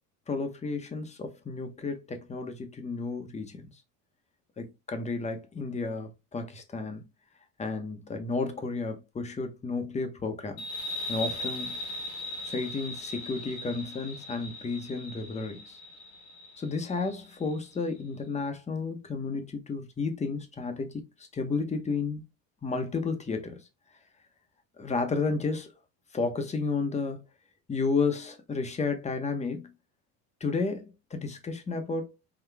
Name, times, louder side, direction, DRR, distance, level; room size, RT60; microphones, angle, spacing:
voice 1, 0.3-3.7 4.6-7.0 7.6-10.6 11.1-11.8 12.4-15.8 16.6-21.0 21.3-22.2 22.6-23.6 24.8-25.7 26.1-27.2 27.7-29.7 30.4-32.1, left 4 dB, 15° left, 0.8 m, -32 dB
sound 1, 10.6-17.8, left 1 dB, 70° left, 1.8 m, -39 dB
5.9 x 2.3 x 3.4 m
supercardioid pair, 130°, 49 cm